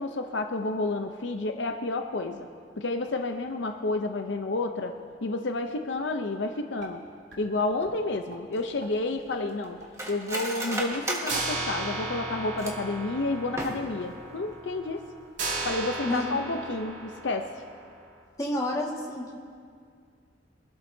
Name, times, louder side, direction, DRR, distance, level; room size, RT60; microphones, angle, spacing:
voice 1, 0.0-2.5 2.8-5.0 5.2-7.0 7.4-9.8 10.1-15.1 15.6-17.5, left 2 dB, 70° left, 6 dB, 0.7 m, -30 dB
sound 1, 6.3-6.4 6.8-6.9 7.3-7.5 7.8-7.9 8.3-8.4 8.8-8.9 9.3-9.4 9.8-9.9 10.3-10.4 10.8-10.9 11.3-18.0, right 2 dB, 75° right, 2.4 m, -36 dB
Cutlery silverware, 8.5-13.0 13.4-14.1 14.5-14.6 14.9-15.2 15.6-15.8, right 1 dB, 15° right, 1.5 m, -35 dB
voice 2, 18.4-19.4, left 1 dB, 20° left, -2 dB, 1.8 m, -29 dB
24.0 x 12.0 x 2.7 m, 2.2 s
head